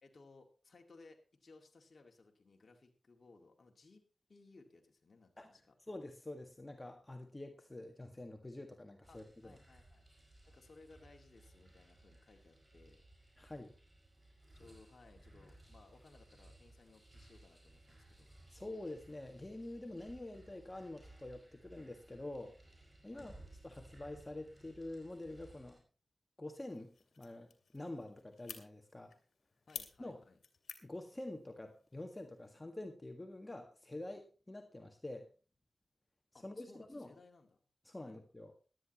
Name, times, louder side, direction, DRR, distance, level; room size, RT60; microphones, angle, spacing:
voice 1, 0.0-4.0 4.3-5.6 9.1-10.0 10.5-13.0 14.5-18.3 23.1-23.3 29.7-30.4 36.3-37.6 38.0-38.2, left 3 dB, 55° left, 3 dB, 2.2 m, -62 dB
voice 2, 5.9-9.6 13.4-13.7 18.5-22.5 23.0-23.3 23.6-25.8 26.4-29.1 30.0-30.2 30.8-35.3 36.3-37.1 37.9-38.5, left 1 dB, 25° left, 4 dB, 1.9 m, -47 dB
sound 1, 9.0-25.8, right 1 dB, 20° right, 6.2 m, -61 dB
sound 2, 26.7-32.6, left 5 dB, 80° left, 2.3 m, -54 dB
17.5 x 12.0 x 3.1 m, 0.35 s
cardioid pair, 50°, 0 cm